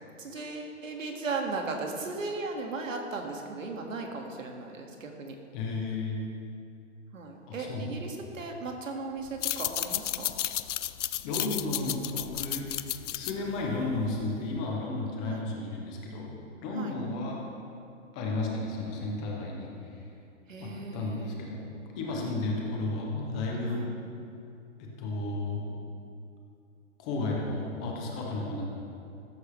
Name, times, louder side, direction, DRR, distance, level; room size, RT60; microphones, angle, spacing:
voice 1, 0.0-5.4 7.1-10.3 15.2-15.4 16.7-16.9 20.5-21.4 22.1-22.2 23.7-23.8 28.2-28.7, right 3 dB, 85° right, 2 dB, 2.0 m, -37 dB
voice 2, 5.5-6.2 7.5-7.9 11.2-12.7 13.1-16.3 16.6-17.4 18.1-20.1 20.6-21.7 22.0-23.9 24.8-25.7 27.0-28.7, left 2 dB, 5° left, -1 dB, 0.3 m, -33 dB
sound 1, 9.3-14.4, left 12 dB, 70° left, 0.6 m, -33 dB
14.5 x 14.0 x 3.3 m, 2.6 s
hypercardioid pair, 140°, 38 cm